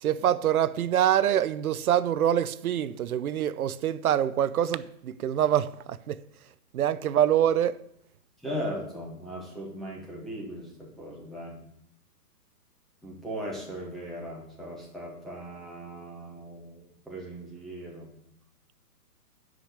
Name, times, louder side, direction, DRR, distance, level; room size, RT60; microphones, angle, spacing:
voice 1, 0.0-6.2 6.7-7.8, right 10 dB, 65° right, 0.7 m, -25 dB
voice 2, 8.4-11.6 13.0-18.1, equal, ahead, 1.8 m, -38 dB
9.8 x 5.1 x 7.9 m
hypercardioid pair, 160°, 47 cm